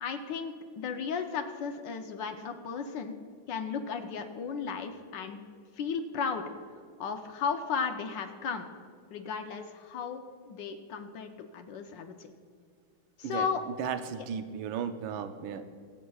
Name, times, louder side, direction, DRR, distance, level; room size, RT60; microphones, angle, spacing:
voice 1, 0.0-3.2 3.5-5.4 5.8-6.4 7.0-8.7 9.1-12.1 13.2-13.6 14.2-14.3, left 6 dB, 70° left, 6 dB, 1.3 m, -35 dB
voice 2, 13.8-15.6, right 7 dB, 75° right, 9 dB, 1.4 m, -35 dB
24.0 x 8.1 x 2.3 m, 2.2 s
omnidirectional pair, 2.2 m